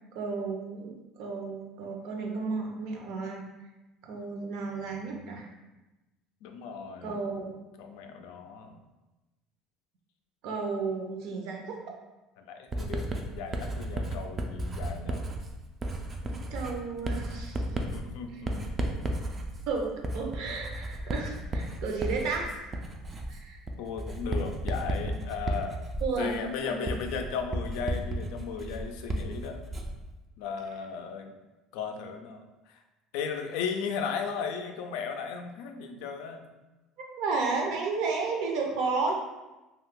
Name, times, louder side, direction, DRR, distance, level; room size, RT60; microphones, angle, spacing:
voice 1, 0.1-3.4 4.0-5.5 7.0-7.6 10.4-11.8 16.2-17.6 18.3-18.4 19.7-22.8 23.3-23.6 26.0-26.3 26.6-26.7 37.2-39.2, right 4 dB, 65° right, 1 dB, 0.6 m, -33 dB
voice 2, 4.8-5.4 6.4-7.2 7.8-8.8 12.4-15.2 17.8-18.9 23.8-25.8 26.2-29.6 30.4-31.3 31.7-32.8 33.1-36.4, left 6 dB, 80° left, 5 dB, 0.3 m, -36 dB
Writing, 12.7-30.1, right 1 dB, 25° right, 0.3 m, -34 dB
2.6 x 2.3 x 3.6 m, 1.1 s
cardioid pair, 140°, 0 cm